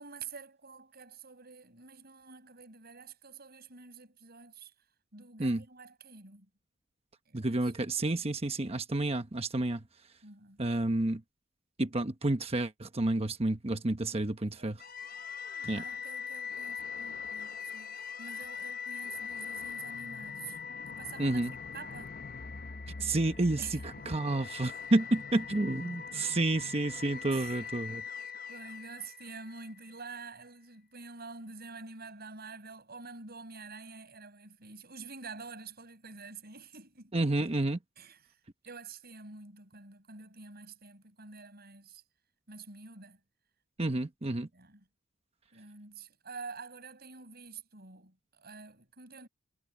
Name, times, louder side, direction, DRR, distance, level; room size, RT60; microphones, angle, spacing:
voice 1, 0.0-4.7 5.1-6.5 7.2-7.7 10.2-10.6 14.1-14.3 14.5-14.8 15.8-20.6 20.9-22.2 23.0-23.2 23.6-24.2 27.3-27.7 28.5-37.1 38.0-38.4 38.6-42.0 42.5-43.2 44.5-44.8 45.5-49.3, right 4 dB, 50° right, 6.9 m, -48 dB
voice 2, 7.3-9.8 10.6-11.2 11.8-14.8 15.6-15.8 21.2-21.5 23.0-28.0 37.1-37.8 43.8-44.5, right 2 dB, 30° right, 1.0 m, -30 dB
sound 1, 14.8-29.9, left 6 dB, 45° left, 0.8 m, -42 dB
head